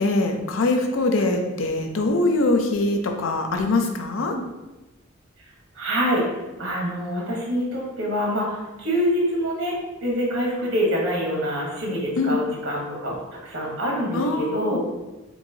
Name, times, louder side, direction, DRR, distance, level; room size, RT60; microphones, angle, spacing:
voice 1, 0.0-4.4 12.2-12.4 14.1-14.8, left 2 dB, 80° left, 4 dB, 0.5 m, -23 dB
voice 2, 5.8-6.3 6.6-13.2 13.4-14.8, equal, 80° right, -2 dB, 1.0 m, -25 dB
4.4 x 2.7 x 2.7 m, 1.1 s
head